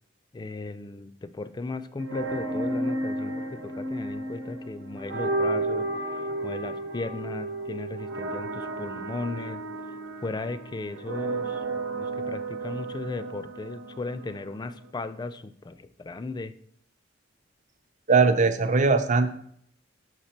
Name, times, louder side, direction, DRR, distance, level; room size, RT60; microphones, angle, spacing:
voice 1, 0.3-9.6 10.2-11.6 12.0-16.5, left 3 dB, 20° left, 13 dB, 0.4 m, -36 dB
sound 1, 2.0-14.9, right 2 dB, 85° right, 1.2 m, -33 dB
voice 2, 18.1-19.3, right 4 dB, 40° right, 9 dB, 0.6 m, -20 dB
6.5 x 6.5 x 4.3 m, 0.67 s
head